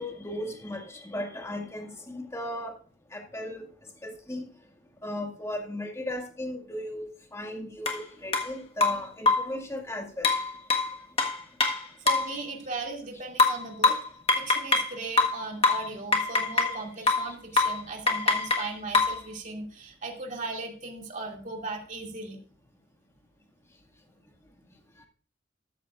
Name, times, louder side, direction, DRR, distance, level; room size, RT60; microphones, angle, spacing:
voice 1, 0.0-2.7 3.1-3.7 4.0-4.4 5.0-10.3, left 1 dB, 15° left, 3 dB, 1.9 m, -36 dB
sound 1, 7.9-8.0 8.3-8.5 8.8-9.6 10.2-12.3 13.4-14.9 15.2-16.8 17.1-17.3 17.6-17.8 18.1-19.2, left 3 dB, 30° left, 1.5 m, -24 dB
voice 2, 12.0-14.0 14.4-22.4, right 3 dB, 40° right, 1 dB, 2.5 m, -37 dB
14.0 x 13.5 x 2.5 m, 0.40 s
head